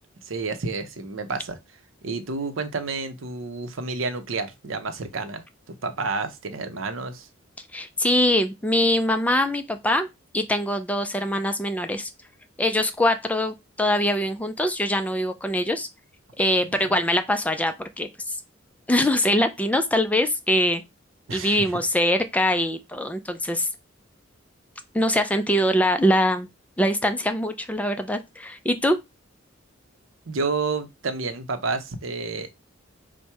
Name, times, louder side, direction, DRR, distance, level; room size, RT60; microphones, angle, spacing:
voice 1, 0.2-1.6 2.0-7.3 21.3-21.7 30.3-32.5, right 3 dB, 80° right, 0.7 m, -30 dB
voice 2, 7.7-10.1 10.3-12.1 12.6-15.9 16.4-18.4 18.9-20.8 21.3-23.7 24.9-26.5 26.8-29.0, left 1 dB, 5° left, 0.4 m, -23 dB
4.3 x 2.1 x 4.6 m
head